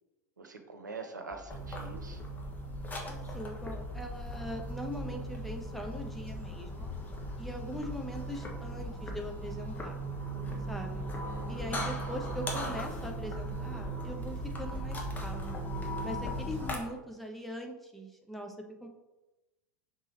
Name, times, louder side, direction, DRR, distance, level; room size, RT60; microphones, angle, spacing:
voice 1, 0.4-2.2 11.3-11.8, right 4 dB, 75° right, 6 dB, 0.9 m, -45 dB
sound 1, 1.3-15.9, equal, 20° right, 1.6 m, -50 dB
sound 2, 1.5-16.8, right 1 dB, 15° left, 1.2 m, -38 dB
voice 2, 3.0-6.9 7.4-9.9 10.7-11.1 11.5-15.7 16.0-18.6 18.8-18.9, equal, ahead, 2 dB, 0.9 m, -41 dB
6.0 x 4.0 x 4.2 m, 1.0 s
figure-of-eight pair, 85°, 10 cm